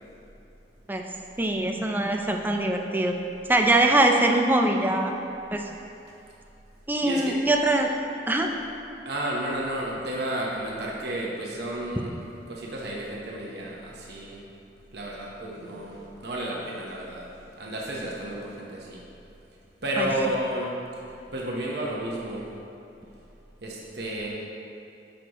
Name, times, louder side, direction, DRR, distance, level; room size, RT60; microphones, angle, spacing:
voice 1, 1.4-3.1 3.5-5.1 5.5-5.6 6.9-7.9 8.3-8.5 20.0-20.1, right 1 dB, 10° right, 2 dB, 0.5 m, -22 dB
voice 2, 7.0-7.4 9.0-12.1 12.5-14.4 14.9-19.0 19.8-20.7 21.3-22.5 23.6-24.3, right 1 dB, 65° right, -3 dB, 1.0 m, -32 dB
10.0 x 6.5 x 3.0 m, 2.8 s
head